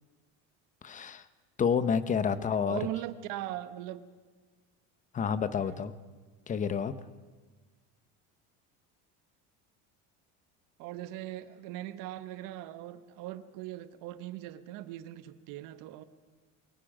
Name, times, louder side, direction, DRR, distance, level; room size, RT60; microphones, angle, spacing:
voice 1, 0.8-1.2 1.6-2.8 5.1-5.9 6.5-6.9, left 6 dB, 20° left, 13 dB, 0.9 m, -29 dB
voice 2, 2.7-4.1 5.6-5.9 10.8-16.0, right 14 dB, 65° right, 12 dB, 1.4 m, -40 dB
28.5 x 23.5 x 5.1 m, 1.4 s
cardioid pair, 150°, 34 cm